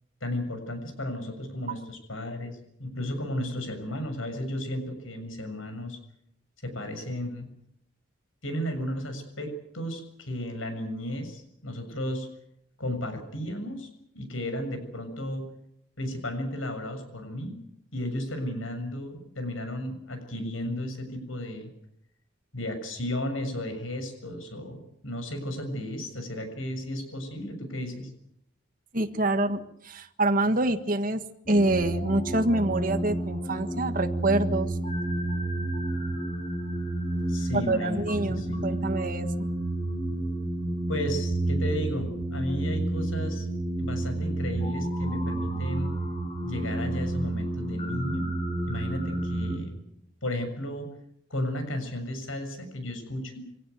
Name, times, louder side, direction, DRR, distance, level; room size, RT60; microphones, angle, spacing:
voice 1, 0.2-6.0 6.6-7.5 8.4-12.3 12.8-13.9 14.1-15.5 16.0-17.6 17.9-21.7 22.5-28.1 37.3-38.6 40.9-43.5 43.8-45.9 46.4-48.3 48.6-49.7 50.2-50.9 51.3-53.4, left 1 dB, 85° left, 7 dB, 7.0 m, -34 dB
voice 2, 28.9-29.6 29.8-31.2 31.5-34.7 37.7-39.3, right 2 dB, 45° right, 7 dB, 1.7 m, -26 dB
sound 1, 31.5-49.6, right 1 dB, 30° left, 5.1 m, -30 dB
24.5 x 17.5 x 9.4 m, 0.75 s
head